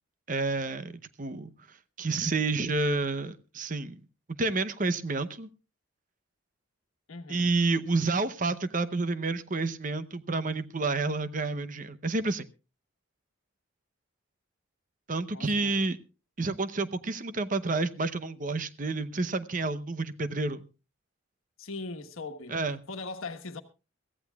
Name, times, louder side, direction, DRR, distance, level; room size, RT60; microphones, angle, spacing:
voice 1, 0.3-4.0 4.4-5.5 7.3-12.4 15.1-16.0 16.4-20.7 22.5-22.8, right 3 dB, 40° right, 0.7 m, -29 dB
voice 2, 7.1-7.6 15.3-15.8 21.6-22.6 22.9-23.6, left 3 dB, 85° left, 1.3 m, -40 dB
23.5 x 15.0 x 2.3 m
head